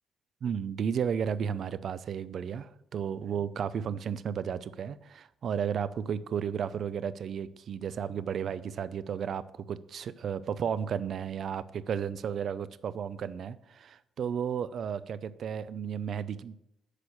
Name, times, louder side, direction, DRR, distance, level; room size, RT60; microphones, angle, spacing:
voice 1, 0.4-16.6, right 7 dB, 50° right, 0.6 m, -33 dB
9.9 x 6.2 x 8.5 m
cardioid pair, 155°, 0 cm